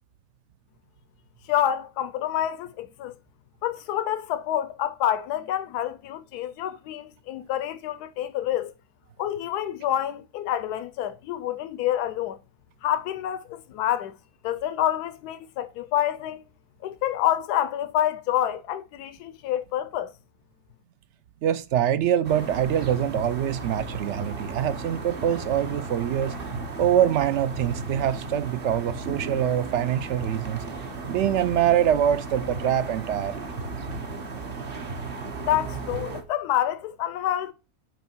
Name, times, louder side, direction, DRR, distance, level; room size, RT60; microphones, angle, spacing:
voice 1, 1.5-3.1 3.6-8.7 9.2-12.4 12.8-14.1 14.4-16.4 16.8-20.1 35.5-37.5, left 11 dB, 90° left, 1.1 m, -27 dB
voice 2, 21.4-26.4 26.8-30.6 31.1-33.5, right 10 dB, 70° right, 0.7 m, -24 dB
sound 1, 22.2-36.2, right 3 dB, 40° right, 1.0 m, -35 dB
6.2 x 4.4 x 4.4 m
omnidirectional pair, 1.6 m